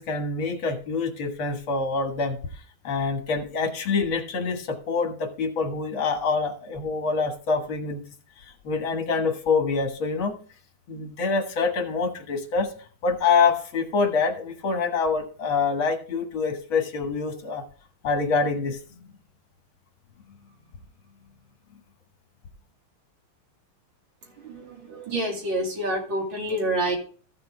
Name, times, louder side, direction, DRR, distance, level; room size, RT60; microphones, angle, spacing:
voice 1, 0.0-8.0 8.4-10.3 10.9-12.7 13.0-17.6 18.0-19.1, left 4 dB, 70° left, 4 dB, 2.2 m, -26 dB
voice 2, 24.2-27.0, right 1 dB, 60° right, 0 dB, 3.2 m, -28 dB
14.5 x 6.8 x 3.3 m, 0.41 s
omnidirectional pair, 2.3 m